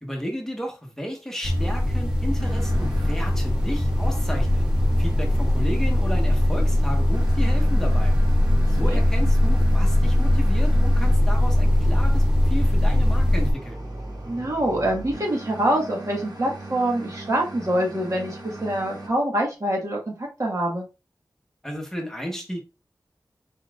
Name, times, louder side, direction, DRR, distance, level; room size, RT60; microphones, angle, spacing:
voice 1, 0.0-4.7 5.0-8.1 8.7-13.8 21.6-22.6, equal, 5° left, 1.2 m, -33 dB
sound 1, 1.4-13.5, left 1 dB, 10° right, 1.1 m, -20 dB
sound 2, 2.4-19.1, right 1 dB, 75° right, 1.6 m, -38 dB
voice 2, 14.2-20.9, right 1 dB, 50° right, 1.6 m, -25 dB
4.6 x 4.1 x 2.5 m
wide cardioid pair, 90°, 7 cm